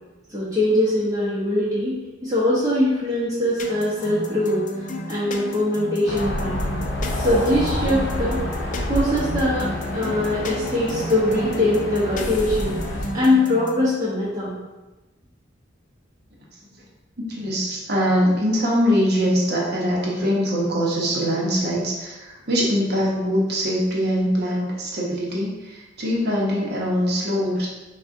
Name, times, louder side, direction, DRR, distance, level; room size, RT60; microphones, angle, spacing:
voice 1, 0.3-4.6 5.1-6.8 7.2-8.4 8.9-12.8 13.1-14.6, left 1 dB, 20° right, -10 dB, 0.9 m, -22 dB
sound 1, 3.6-13.9, equal, 40° left, 0.4 m, -33 dB
sound 2, 6.1-13.1, left 1 dB, 65° left, 0.8 m, -28 dB
voice 2, 17.2-27.7, equal, 60° right, -4 dB, 0.9 m, -22 dB
6.1 x 2.4 x 2.6 m, 1.1 s
head